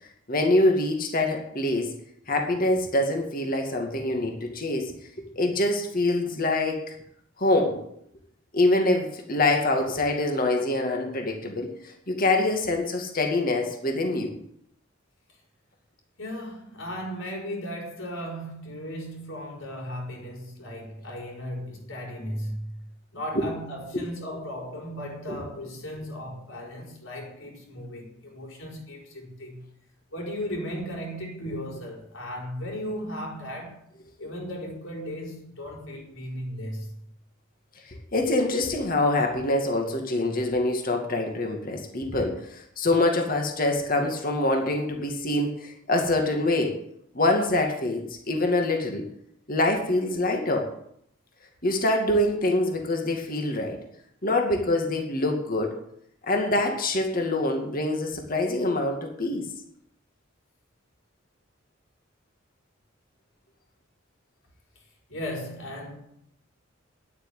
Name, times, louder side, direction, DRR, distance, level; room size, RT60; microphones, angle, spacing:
voice 1, 0.3-1.9 2.3-6.9 7.4-7.8 8.5-14.3 23.3-23.4 25.3-25.4 37.9-46.8 47.1-49.0 49.5-50.7 51.6-53.8 54.2-55.8 56.3-59.4, left 2 dB, 45° left, 2.3 m, -25 dB
voice 2, 16.2-29.6 30.1-33.9 34.2-36.9 64.7-66.0, equal, 70° left, 5.0 m, -36 dB
10.0 x 8.6 x 9.9 m
head